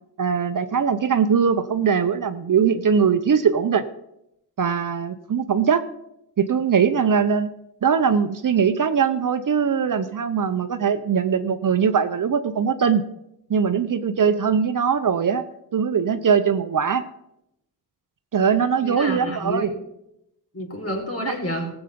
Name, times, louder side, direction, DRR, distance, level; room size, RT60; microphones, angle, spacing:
voice 1, 0.2-3.8 4.6-5.8 6.4-7.5 7.8-13.0 13.5-15.4 15.7-17.0 18.3-19.7 21.2-21.3, right 6 dB, 50° right, 10 dB, 0.9 m, -21 dB
voice 2, 18.8-19.7 20.5-21.7, equal, 35° left, 1 dB, 4.3 m, -29 dB
16.0 x 8.2 x 5.2 m, 0.82 s
cardioid pair, 65°, 40 cm